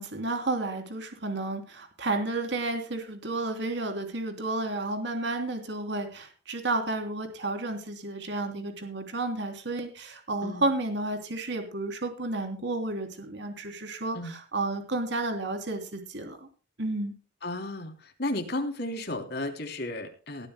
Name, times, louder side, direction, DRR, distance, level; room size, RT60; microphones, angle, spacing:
voice 1, 0.0-16.4 16.8-17.1, right 2 dB, 65° right, 6 dB, 3.3 m, -31 dB
voice 2, 17.4-17.9 18.2-20.5, left 1 dB, 60° left, 5 dB, 3.2 m, -33 dB
19.5 x 13.0 x 2.2 m, 0.35 s
head